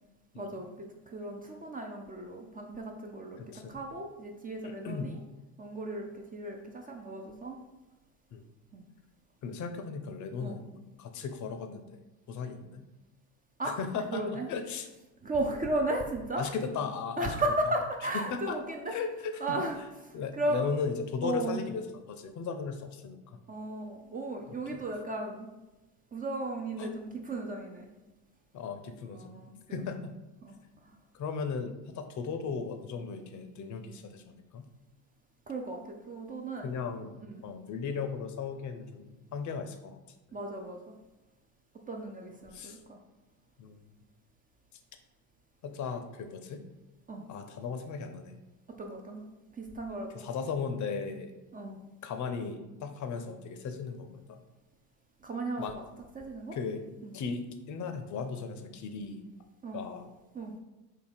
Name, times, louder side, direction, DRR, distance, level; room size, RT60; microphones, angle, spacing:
voice 1, 0.4-5.2 5.6-7.6 8.7-8.8 10.4-10.6 13.6-13.7 14.1-14.5 15.2-16.5 17.2-19.0 19.4-20.6 21.2-21.6 23.5-25.5 26.1-27.9 29.1-29.5 30.4-30.6 30.8-30.9 35.5-36.7 37.3-37.4 40.3-41.0 41.9-43.0 47.1-47.3 48.8-49.3 49.6-50.3 51.5-51.8 55.2-55.6 56.2-56.6 57.0-57.1 59.6-59.8 60.3-60.5, right 2 dB, 20° right, 2 dB, 0.4 m, -35 dB
voice 2, 3.4-3.8 4.6-5.1 8.3-8.4 9.4-12.0 12.3-12.8 13.6-14.9 16.4-17.3 18.1-18.6 18.9-19.6 20.1-23.2 24.5-24.8 26.8-26.9 28.5-29.3 29.7-30.1 31.1-34.7 36.6-40.0 42.5-42.8 43.6-43.8 45.6-46.6 47.3-48.4 50.1-51.3 52.0-54.4 55.6-55.8 56.5-56.8 57.1-59.2 59.7-60.1, left 5 dB, 35° left, 7 dB, 0.6 m, -37 dB
4.0 x 2.7 x 4.3 m, 1.1 s
hypercardioid pair, 70°, 49 cm